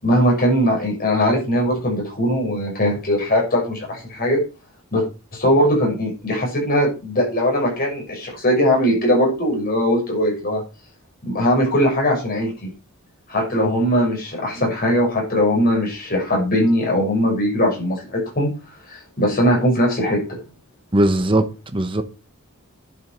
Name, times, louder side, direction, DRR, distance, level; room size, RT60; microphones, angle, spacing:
voice 1, 0.0-4.4 4.9-5.0 5.3-10.6 11.3-12.7 13.3-18.5 18.9-20.4, equal, 45° left, 6.6 m, -20 dB
voice 2, 20.9-22.0, right 1 dB, 25° right, 1.0 m, -19 dB
11.0 x 7.3 x 6.0 m
head